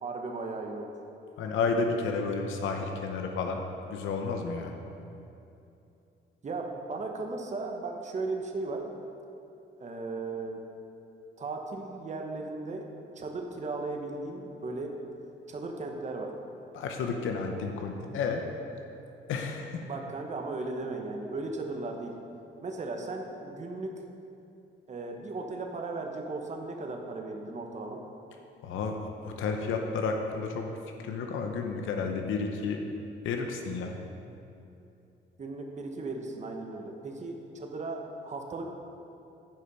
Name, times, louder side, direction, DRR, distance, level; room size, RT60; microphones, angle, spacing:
voice 1, 0.0-0.9 6.4-8.8 9.8-10.6 11.4-12.9 13.2-15.0 15.5-16.3 19.9-22.2 22.6-24.0 24.9-28.0 35.4-38.7, right 3 dB, 35° right, 2 dB, 1.1 m, -36 dB
voice 2, 1.4-3.6 3.9-4.8 16.7-18.4 19.3-19.8 28.6-30.7 31.0-32.9 33.2-34.0, left 4 dB, 80° left, 3 dB, 0.8 m, -31 dB
10.5 x 5.1 x 5.5 m, 2.8 s
cardioid pair, 90°, 20 cm